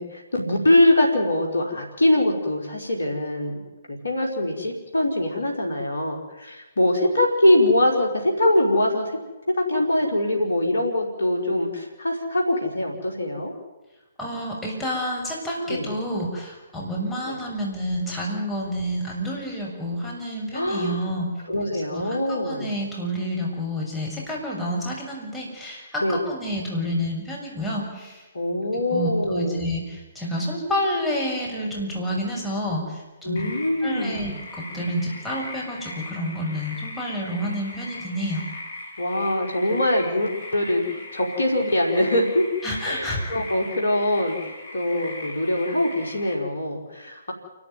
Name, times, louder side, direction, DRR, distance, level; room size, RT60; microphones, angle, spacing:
voice 1, 0.0-3.6 3.9-9.2 9.5-13.5 15.7-15.9 17.2-17.4 20.5-21.1 21.5-22.7 26.0-26.2 28.3-29.7 33.2-34.3 39.0-42.4 42.8-47.3, left 1 dB, 75° left, 1 dB, 4.5 m, -23 dB
voice 2, 14.2-21.3 21.9-28.2 28.9-33.6 33.8-38.4 42.6-43.2, equal, ahead, -5 dB, 7.2 m, -29 dB
sound 1, 33.4-46.4, left 2 dB, 55° left, 5.5 m, -39 dB
28.5 x 13.0 x 9.4 m, 1.1 s
figure-of-eight pair, 135°, 0 cm